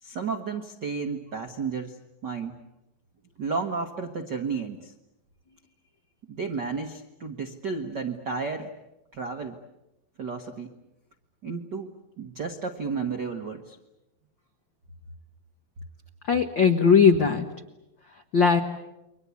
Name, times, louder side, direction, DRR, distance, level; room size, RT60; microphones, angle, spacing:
voice 1, 0.0-1.9 2.2-2.5 3.4-4.9 6.3-8.7 9.1-9.6 10.2-10.7 11.4-11.9 12.2-13.8, right 5 dB, 70° right, 5 dB, 1.0 m, -32 dB
voice 2, 16.2-17.5 18.1-18.6, left 6 dB, 85° left, 6 dB, 1.0 m, -19 dB
30.0 x 23.5 x 8.4 m, 0.93 s
omnidirectional pair, 4.1 m